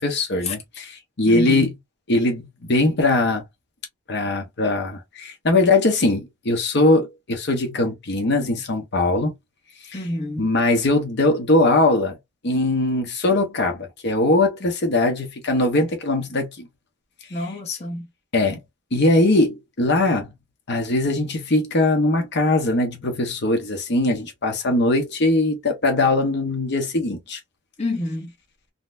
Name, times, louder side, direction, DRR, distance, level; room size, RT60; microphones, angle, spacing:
voice 1, 0.0-1.7 2.1-3.4 4.1-9.3 9.9-10.0 10.4-12.2 12.4-16.7 18.3-18.6 18.9-20.3 20.7-27.4, left 2 dB, 60° left, 0.9 m, -21 dB
voice 2, 1.3-1.7 9.9-10.5 17.3-18.1 27.8-28.3, left 2 dB, 35° left, 0.9 m, -28 dB
3.9 x 2.1 x 2.5 m
head